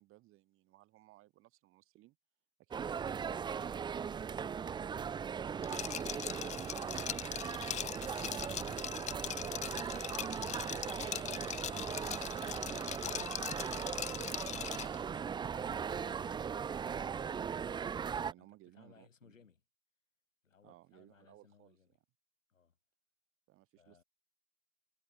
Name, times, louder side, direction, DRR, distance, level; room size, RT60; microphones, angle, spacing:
voice 1, 0.0-2.2 2.6-3.2 17.1-17.6 18.2-19.4 20.6-21.8 23.5-24.0, right 17 dB, 35° right, 7.6 m, -61 dB
sound 1, 2.7-18.3, right 7 dB, 10° right, 0.9 m, -39 dB
Liquid, 5.6-15.0, left 11 dB, 20° left, 0.8 m, -41 dB
voice 2, 12.5-13.4 15.8-16.5 16.8-17.6 18.4-19.6 20.4-21.9 22.5-22.8 23.8-24.0, left 6 dB, 80° left, 7.1 m, -65 dB
hypercardioid pair, 110°, 38 cm